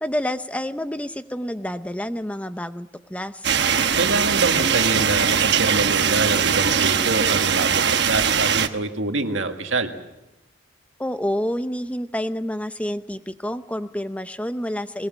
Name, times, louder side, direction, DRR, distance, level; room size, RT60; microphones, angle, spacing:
voice 1, 0.0-3.6 11.0-15.1, left 1 dB, 5° left, 11 dB, 0.7 m, -28 dB
sound 1, 3.4-8.7, right 7 dB, 60° right, 1.1 m, -21 dB
voice 2, 4.0-9.9, right 3 dB, 85° right, 5 dB, 1.9 m, -25 dB
21.5 x 20.5 x 7.5 m, 0.96 s
head